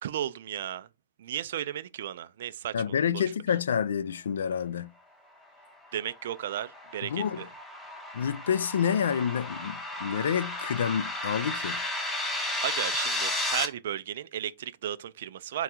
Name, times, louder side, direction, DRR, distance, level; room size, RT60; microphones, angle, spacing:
voice 1, 0.0-0.9 1.2-3.2 5.9-7.5 12.6-15.6, right 11 dB, 65° right, 0.3 m, -34 dB
voice 2, 2.7-4.9 7.0-7.5 8.1-11.8, left 8 dB, 85° left, 0.3 m, -28 dB
sound 1, 5.9-13.6, left 2 dB, 10° left, 0.7 m, -34 dB
3.8 x 2.3 x 4.3 m
hypercardioid pair, 140°, 0 cm